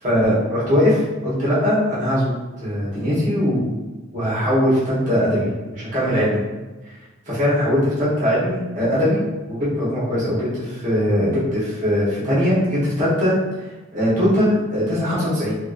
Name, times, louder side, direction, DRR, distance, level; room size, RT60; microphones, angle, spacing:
voice 1, 0.0-2.3 2.6-3.7 4.1-6.4 7.3-13.4 13.9-15.5, equal, 40° right, -10 dB, 1.1 m, -20 dB
2.9 x 2.8 x 2.5 m, 1.2 s
head